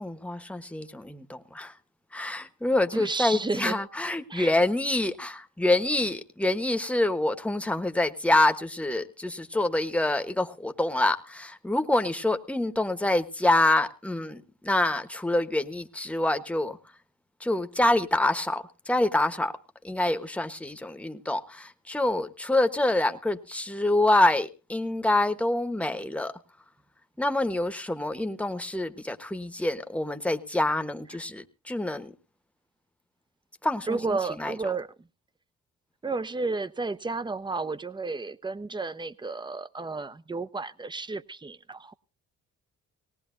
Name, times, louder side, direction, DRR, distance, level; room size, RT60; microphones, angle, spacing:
voice 1, 0.0-1.7 2.1-16.8 17.4-19.5 19.8-26.3 27.2-32.1 33.6-34.6, left 1 dB, 5° left, 1.1 m, -26 dB
voice 2, 2.9-3.8 4.3-4.6 33.9-34.9 36.0-41.9, right 3 dB, 15° right, 0.7 m, -32 dB
19.5 x 18.5 x 2.6 m
cardioid pair, 90°, 30 cm